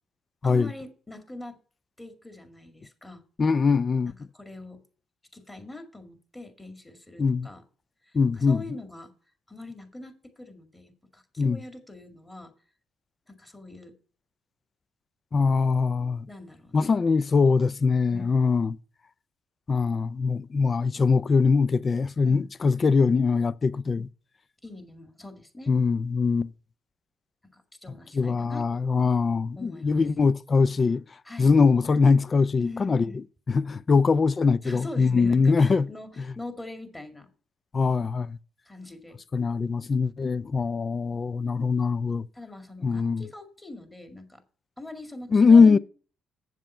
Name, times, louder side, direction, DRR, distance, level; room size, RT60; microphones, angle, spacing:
voice 1, 0.4-1.6 2.0-3.2 4.0-4.8 5.3-7.6 8.1-9.1 9.5-12.5 13.3-13.9 16.3-16.9 18.1-18.3 22.2-22.5 24.6-25.7 27.5-28.6 29.6-30.0 31.2-31.5 32.6-33.2 34.6-37.3 38.7-39.2 42.3-44.4 44.8-45.8, left 2 dB, 15° left, 2.0 m, -42 dB
voice 2, 3.4-4.1 7.2-7.5 8.1-8.6 11.4-11.6 15.3-16.3 16.7-18.8 19.7-24.1 25.7-26.5 28.1-31.0 31.4-33.1 33.5-35.9 37.7-38.4 39.3-42.3 42.8-43.3 45.3-45.8, left 4 dB, 40° left, 0.4 m, -22 dB
7.7 x 7.4 x 5.4 m
supercardioid pair, 75°, 0 cm